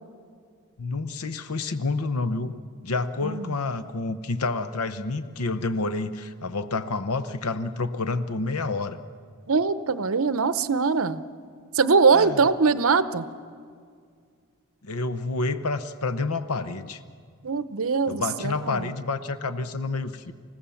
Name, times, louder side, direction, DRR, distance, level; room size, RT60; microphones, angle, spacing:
voice 1, 0.8-2.5 2.8-9.0 12.1-12.4 14.8-17.0 18.1-20.3, left 3 dB, 75° left, 11 dB, 0.8 m, -29 dB
voice 2, 3.2-3.6 9.5-11.2 11.7-13.2 17.4-18.9, right 4 dB, 65° right, 13 dB, 0.7 m, -22 dB
29.0 x 16.0 x 7.1 m, 2.1 s
head